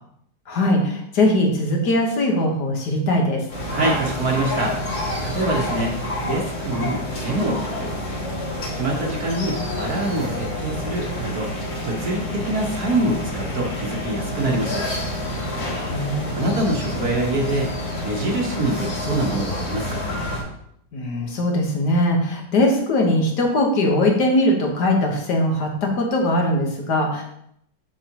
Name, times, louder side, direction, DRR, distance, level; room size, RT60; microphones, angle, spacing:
voice 1, 0.5-3.5 15.6-16.6 20.9-27.2, left 1 dB, 65° left, 1 dB, 1.9 m, -21 dB
sound 1, 3.5-20.4, left 1 dB, 80° left, 3.1 m, -28 dB
voice 2, 3.7-4.7 5.2-5.9 6.3-7.9 8.7-11.5 11.8-14.9 16.3-17.8 18.0-20.2, right 2 dB, 60° right, -1 dB, 1.6 m, -25 dB
7.2 x 7.2 x 3.0 m, 0.73 s
omnidirectional pair, 1.9 m